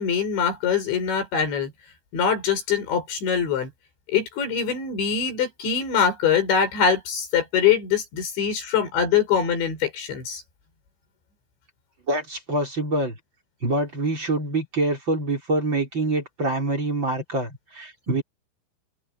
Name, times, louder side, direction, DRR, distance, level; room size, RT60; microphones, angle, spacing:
voice 1, 0.0-1.7 2.1-3.7 4.1-10.4, left 7 dB, 60° left, 8.5 m, -23 dB
voice 2, 12.1-13.2 13.6-18.2, right 2 dB, 25° right, 5.5 m, -25 dB
open air
omnidirectional pair, 5.9 m